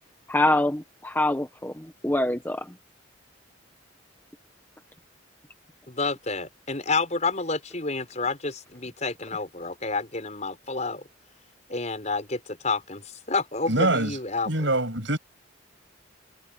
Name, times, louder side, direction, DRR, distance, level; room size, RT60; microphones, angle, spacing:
voice 1, 0.3-2.7, left 1 dB, 10° left, 1.2 m, -25 dB
voice 2, 5.9-11.1 11.7-14.5, left 3 dB, 35° left, 6.4 m, -29 dB
voice 3, 13.7-14.2 14.5-15.2, right 2 dB, 70° right, 7.6 m, -24 dB
head